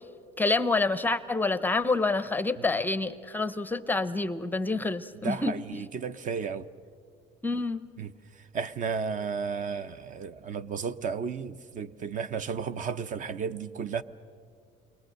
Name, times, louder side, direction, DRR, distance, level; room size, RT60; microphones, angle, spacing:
voice 1, 0.4-5.6 7.4-7.9, left 3 dB, 10° left, 0.6 m, -27 dB
voice 2, 5.2-6.7 8.0-8.1 8.5-14.0, right 6 dB, 40° right, 0.7 m, -33 dB
29.0 x 22.0 x 6.5 m
cardioid pair, 135°, 19 cm